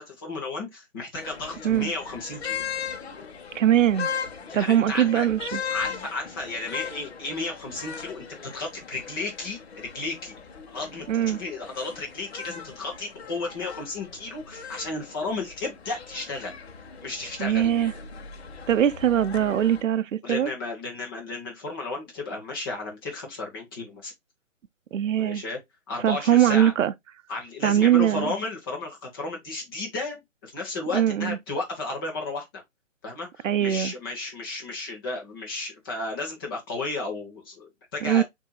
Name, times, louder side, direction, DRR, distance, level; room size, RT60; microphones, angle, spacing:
voice 1, 0.0-2.6 4.5-10.3 10.7-16.5 17.0-17.7 20.2-24.1 25.2-25.6 25.9-26.7 27.3-30.2 30.4-32.6 33.0-38.2, left 3 dB, 15° left, 0.9 m, -33 dB
sound 1, 1.1-19.8, left 6 dB, 50° left, 1.0 m, -38 dB
voice 2, 3.5-4.1 4.5-5.6 11.1-11.4 17.4-17.9 18.7-20.5 24.9-25.4 26.0-26.9 27.6-28.3 30.9-31.4 33.4-33.9 38.0-38.2, right 10 dB, 70° right, 0.6 m, -21 dB
6.6 x 2.7 x 2.2 m
hypercardioid pair, 155°, 40 cm